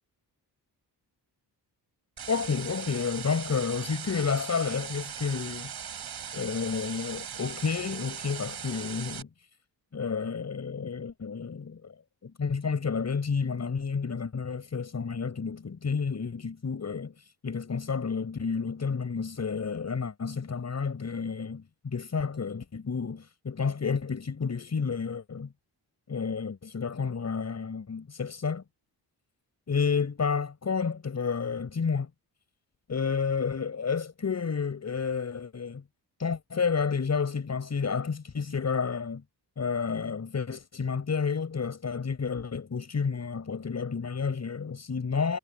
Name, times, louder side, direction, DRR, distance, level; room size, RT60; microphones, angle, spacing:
sound 1, 2.2-9.2, right 8 dB, 65° right, 5.3 m, -39 dB
voice 1, 2.3-5.7 6.3-9.3 9.9-11.9 12.2-25.5 26.1-28.6 29.7-32.1 32.9-35.8 36.2-39.2 39.6-45.4, left 5 dB, 40° left, 6.2 m, -30 dB
wide cardioid pair, 150°, 41 cm